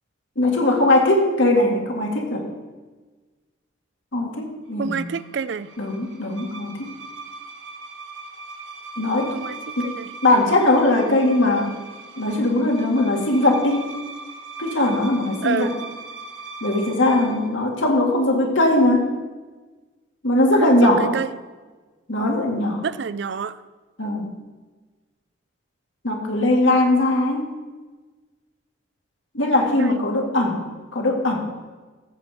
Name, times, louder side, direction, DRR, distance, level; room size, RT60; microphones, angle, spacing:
voice 1, 0.4-2.5 4.1-5.1 5.8-6.9 9.0-9.3 9.8-9.9 10.2-11.7 12.2-13.9 14.6-15.7 16.6-19.1 20.2-21.2 22.1-22.9 24.0-24.3 26.0-27.5 29.3-31.4, left 1 dB, 75° left, 1 dB, 2.1 m, -20 dB
voice 2, 4.8-5.7 9.3-10.1 15.4-15.7 20.6-21.3 22.8-23.6 29.8-30.0, right 5 dB, 60° right, 16 dB, 0.4 m, -28 dB
sound 1, 4.8-17.5, right 3 dB, 80° right, 1.7 m, -39 dB
14.5 x 7.4 x 5.2 m, 1.3 s
head